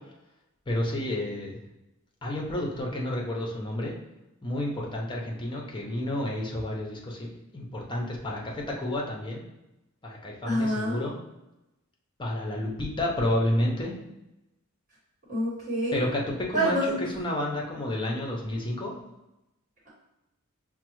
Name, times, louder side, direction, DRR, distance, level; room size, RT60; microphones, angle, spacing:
voice 1, 0.7-1.6 2.2-3.9 4.4-7.3 7.5-9.4 10.0-11.2 12.2-13.9 15.9-18.9, left 1 dB, 20° left, -2 dB, 0.6 m, -30 dB
voice 2, 10.4-11.0 15.3-16.1 16.5-17.0, equal, 35° right, -7 dB, 1.3 m, -27 dB
5.7 x 2.1 x 3.0 m, 0.94 s
head